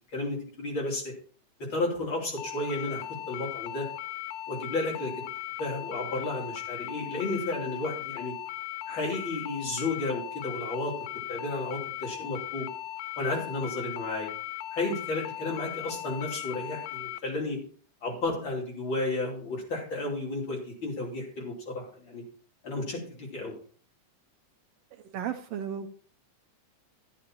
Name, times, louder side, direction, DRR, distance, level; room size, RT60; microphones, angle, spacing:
voice 1, 0.1-1.1 1.7-3.9 4.5-5.2 5.6-8.3 8.9-10.9 11.3-12.7 13.2-14.3 14.7-17.6 18.0-22.2 22.6-23.5, left 2 dB, 40° left, -2 dB, 3.7 m, -32 dB
sound 1, 2.4-17.2, left 14 dB, 80° left, 1.7 m, -38 dB
voice 2, 25.0-25.9, right 9 dB, 80° right, 5 dB, 1.4 m, -34 dB
12.5 x 10.0 x 2.9 m, 0.44 s
omnidirectional pair, 3.5 m